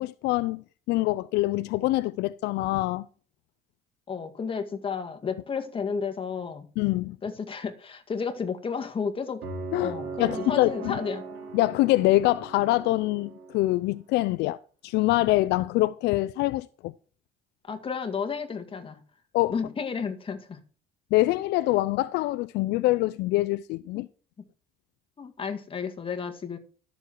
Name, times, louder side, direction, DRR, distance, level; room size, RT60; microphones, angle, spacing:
voice 1, 0.0-3.1 6.8-7.2 9.7-9.9 10.2-11.0 11.5-14.6 14.8-16.9 19.3-19.5 21.1-24.1, left 18 dB, 85° left, 0.5 m, -25 dB
voice 2, 4.1-6.7 7.2-9.4 9.8-11.2 17.7-19.0 19.5-20.6 25.2-26.6, left 6 dB, 30° left, 2.0 m, -32 dB
sound 1, 9.4-13.5, right 4 dB, 85° right, 4.3 m, -38 dB
13.0 x 7.1 x 4.6 m
cardioid pair, 110°, 17 cm